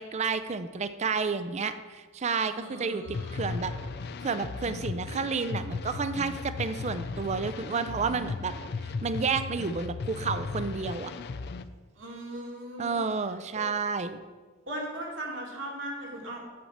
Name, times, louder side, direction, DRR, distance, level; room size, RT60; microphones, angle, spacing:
voice 1, 0.0-3.7 4.2-8.5 8.8-11.1 12.8-14.2, right 5 dB, 35° right, 11 dB, 0.4 m, -31 dB
voice 2, 2.4-3.5 12.0-13.1 14.7-16.6, right 1 dB, 70° right, -2 dB, 2.3 m, -38 dB
sound 1, 3.1-11.6, left 4 dB, 55° left, 0.4 m, -36 dB
8.5 x 4.3 x 7.2 m, 1.4 s
head